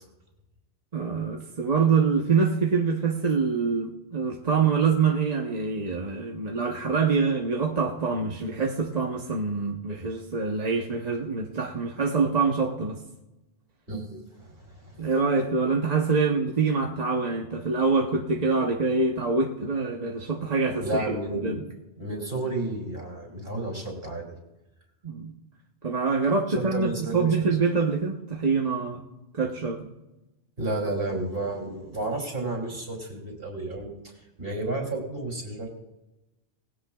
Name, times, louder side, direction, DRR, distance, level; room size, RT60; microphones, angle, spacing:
voice 1, 0.9-13.0 15.0-21.2 21.4-21.6 25.0-25.3 25.8-29.0 29.3-29.9, right 4 dB, 40° right, 1 dB, 1.0 m, -25 dB
voice 2, 13.9-15.0 20.8-21.6 22.0-24.3 26.7-27.5 30.6-33.9 34.4-35.7, right 2 dB, 55° right, 0 dB, 3.3 m, -32 dB
20.0 x 16.5 x 2.3 m, 1.0 s
omnidirectional pair, 1.1 m